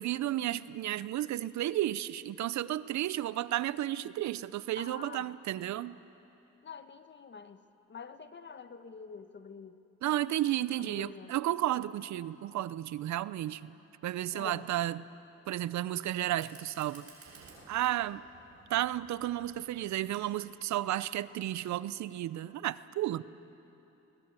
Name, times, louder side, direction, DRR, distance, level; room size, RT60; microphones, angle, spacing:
voice 1, 0.0-6.0 10.0-13.7 14.0-15.0 15.5-18.2 18.7-23.2, right 13 dB, 65° right, 17 dB, 0.6 m, -33 dB
voice 2, 4.8-5.3 6.6-7.6 7.9-9.8 10.8-11.4 14.3-14.7, left 5 dB, 35° left, 10 dB, 1.2 m, -46 dB
Fire, 16.3-21.3, right 3 dB, 50° right, 6.5 m, -57 dB
20.5 x 20.0 x 8.9 m, 3.0 s
cardioid pair, 90°, 30 cm